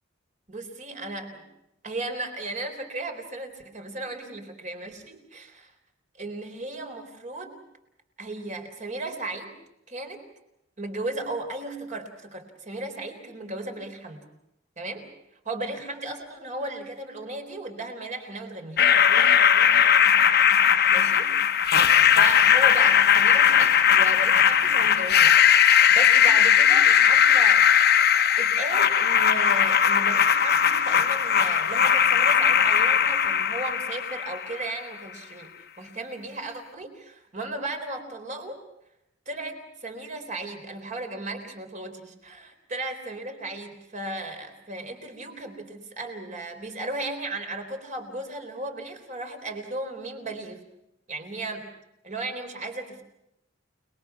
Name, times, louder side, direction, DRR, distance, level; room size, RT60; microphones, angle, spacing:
voice 1, 0.5-1.5 1.8-5.7 6.1-7.6 8.2-9.5 9.9-10.2 10.8-14.3 14.8-15.1 15.4-18.8 20.9-21.3 22.1-27.6 28.4-35.5 35.8-38.6 39.3-50.6 51.1-51.7 52.0-53.0, right 2 dB, 40° right, 5 dB, 3.9 m, -35 dB
sound 1, 18.8-34.7, left 8 dB, 55° left, 1.1 m, -19 dB
30.0 x 21.0 x 6.0 m, 0.84 s
head